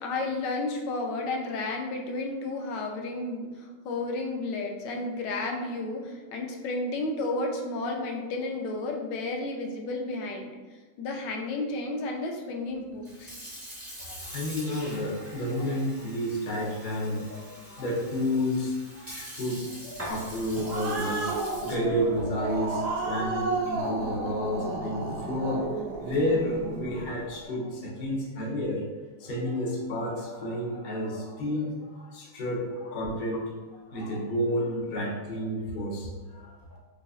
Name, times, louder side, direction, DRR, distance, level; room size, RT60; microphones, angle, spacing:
voice 1, 0.0-10.6 11.0-13.4 33.3-33.4, left 2 dB, 80° left, 2 dB, 1.2 m, -32 dB
Sink (filling or washing) / Fill (with liquid), 12.9-24.5, equal, 20° right, 0.3 m, -44 dB
voice 2, 14.0-28.8 29.2-33.4 33.9-36.6, left 1 dB, 65° left, -3 dB, 0.5 m, -31 dB
Growling, 20.3-27.1, right 3 dB, 70° right, 1.1 m, -32 dB
4.9 x 2.4 x 2.3 m, 1.4 s
omnidirectional pair, 1.9 m